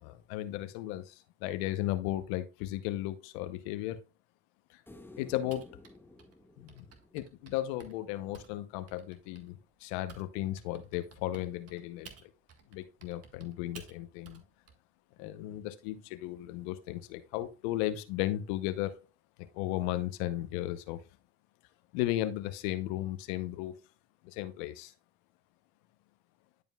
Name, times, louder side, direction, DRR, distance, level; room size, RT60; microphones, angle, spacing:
voice 1, 0.0-4.0 5.2-5.7 6.6-6.8 7.1-12.1 12.7-14.4 15.2-18.9 19.5-21.0 21.9-23.7 24.2-24.9, left 14 dB, 85° left, 0.8 m, -35 dB
sound 1, 4.9-8.1 10.7-10.8, left 2 dB, 5° left, 1.0 m, -54 dB
Typing, 5.5-10.3 10.6-14.7, right 6 dB, 45° right, 1.7 m, -54 dB
11.0 x 5.1 x 2.3 m
supercardioid pair, 80°, 33 cm